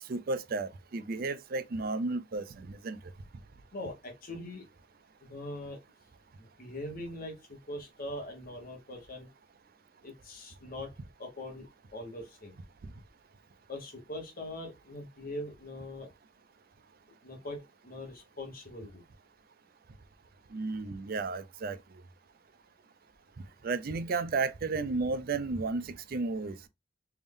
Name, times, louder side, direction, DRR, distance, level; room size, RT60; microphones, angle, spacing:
voice 1, 0.1-3.0 20.5-21.8 23.6-26.7, right 3 dB, 55° right, 0.5 m, -33 dB
voice 2, 3.7-4.6 5.2-5.8 6.6-9.3 10.0-10.9 11.2-12.5 13.7-16.1 17.2-19.0, left 1 dB, 50° left, 1.3 m, -42 dB
3.5 x 2.6 x 3.5 m
head